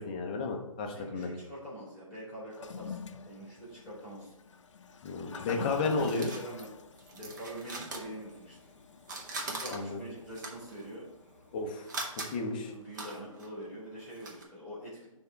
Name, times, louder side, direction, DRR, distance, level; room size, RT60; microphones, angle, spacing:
voice 1, 0.0-1.3 5.0-6.3 9.7-10.0 11.5-11.9 12.1-12.7, left 3 dB, 15° left, 2 dB, 0.5 m, -33 dB
voice 2, 0.9-4.3 5.3-6.7 7.1-8.6 9.4-11.1 12.5-15.1, equal, 5° right, -7 dB, 2.5 m, -44 dB
Toilet flush, 2.5-11.8, left 6 dB, 60° left, 0.5 m, -47 dB
sound 1, 5.3-8.7 9.0-14.4, right 2 dB, 35° right, 1.0 m, -42 dB
9.5 x 3.5 x 4.4 m, 1.0 s
hypercardioid pair, 165°, 17 cm